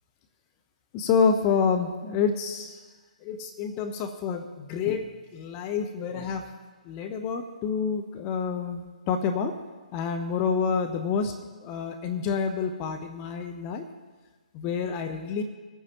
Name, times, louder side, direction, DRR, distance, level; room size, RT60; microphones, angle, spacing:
voice 1, 0.9-2.8 3.2-6.5 6.9-9.5 9.9-11.3 11.6-13.9 14.5-15.4, left 6 dB, 30° left, 6 dB, 0.8 m, -28 dB
20.5 x 9.1 x 2.9 m, 1.4 s
figure-of-eight pair, 130°, 4 cm